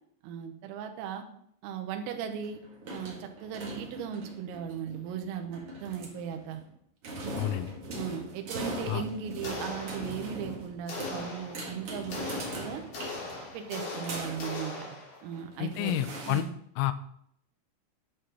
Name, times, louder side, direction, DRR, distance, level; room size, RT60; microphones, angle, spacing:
voice 1, 0.2-1.2 1.6-2.6 2.9-6.6 8.0-12.3 12.6-12.8 13.5-16.0 16.3-16.5, right 8 dB, 85° right, 5 dB, 3.7 m, -37 dB
sound 1, 2.2-6.7 7.0-14.6 15.3-16.4, right 1 dB, 65° right, 1.4 m, -41 dB
voice 2, 7.4-7.7 8.9-9.0 15.6-16.4 16.8-16.9, left 13 dB, 90° left, 12 dB, 3.4 m, -29 dB
sound 2, 9.4-10.5 10.9-15.4, left 3 dB, 40° left, 3.8 m, -40 dB
11.0 x 6.7 x 5.4 m, 0.69 s
omnidirectional pair, 6.0 m